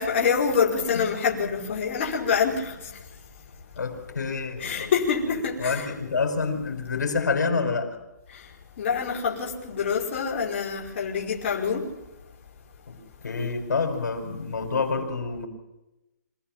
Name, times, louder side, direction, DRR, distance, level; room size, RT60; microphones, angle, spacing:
voice 1, 0.0-2.7 4.6-5.9 8.8-11.8, left 6 dB, 40° left, -2 dB, 5.1 m, -26 dB
voice 2, 3.8-4.9 5.2-8.0 12.9-15.5, left 4 dB, 80° left, 4 dB, 5.4 m, -28 dB
26.5 x 17.5 x 7.5 m, 0.97 s
hypercardioid pair, 165°, 9 cm